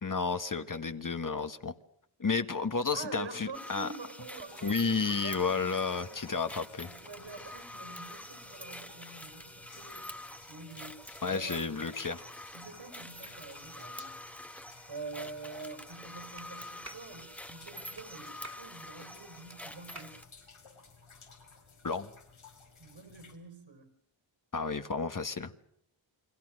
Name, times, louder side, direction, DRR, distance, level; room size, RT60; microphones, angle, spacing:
voice 1, 0.0-1.7 2.2-3.9 4.6-6.9 11.2-12.2 21.8-22.1 24.5-25.5, left 4 dB, 40° left, 9 dB, 1.6 m, -32 dB
voice 2, 2.9-6.2 6.8-10.1 10.5-10.9 11.2-11.6 12.5-14.1 14.9-20.2 22.8-23.9, right 4 dB, 65° right, 8 dB, 5.1 m, -46 dB
sound 1, 3.5-20.2, left 1 dB, 5° left, 1.3 m, -46 dB
sound 2, 4.4-23.4, left 4 dB, 90° left, 4.8 m, -57 dB
Clapping, 16.4-16.5 16.8-17.1 18.0-18.1 18.4-18.7 19.5-19.6 20.0-20.2, right 2 dB, 35° right, 2.7 m, -48 dB
30.0 x 21.5 x 6.4 m, 0.70 s
cardioid pair, 50°, 48 cm